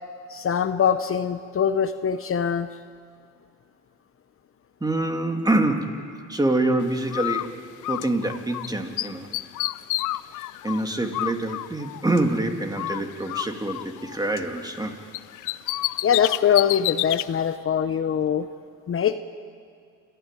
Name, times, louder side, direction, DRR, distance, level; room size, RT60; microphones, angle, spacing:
voice 1, 0.3-2.7 16.0-18.5 18.9-19.2, left 8 dB, 45° left, 10 dB, 0.9 m, -23 dB
voice 2, 4.8-7.5 7.9-9.3 10.6-14.9, right 2 dB, 15° right, 5 dB, 2.4 m, -25 dB
Bird, 7.1-8.7 9.0-12.4 12.8-14.9 15.1-17.3, left 16 dB, 85° left, 0.5 m, -30 dB
29.0 x 13.5 x 9.0 m, 2.2 s
cardioid pair, 90°, 30 cm